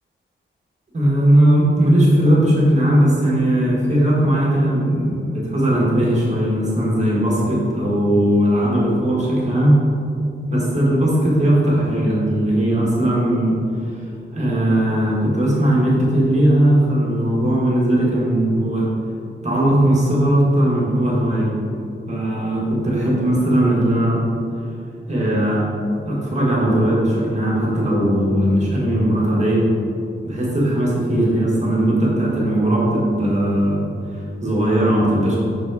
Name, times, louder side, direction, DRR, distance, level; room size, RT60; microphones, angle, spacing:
voice 1, 0.9-9.8 10.5-13.6 14.3-18.9 19.4-21.6 22.1-24.2 25.1-25.6 26.0-29.7 30.2-33.8 34.1-35.4, right 1 dB, 35° right, -5 dB, 1.4 m, -18 dB
5.8 x 4.1 x 4.7 m, 2.6 s
wide cardioid pair, 145°, 21 cm